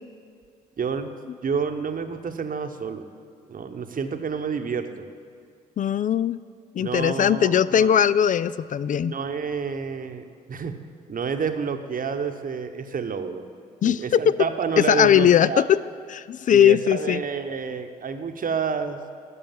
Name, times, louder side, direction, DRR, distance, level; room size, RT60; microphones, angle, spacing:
voice 1, 0.8-1.1 1.4-3.1 3.5-5.1 6.8-7.9 9.0-10.8 11.1-13.5 13.8-15.7 16.5-19.0, right 6 dB, 45° right, 7 dB, 1.0 m, -29 dB
voice 2, 5.8-6.4 6.8-9.1 13.8-14.4 14.8-15.8 16.1-17.2, left 9 dB, 40° left, 17 dB, 0.4 m, -19 dB
12.5 x 6.4 x 7.5 m, 2.3 s
hypercardioid pair, 45°, 20 cm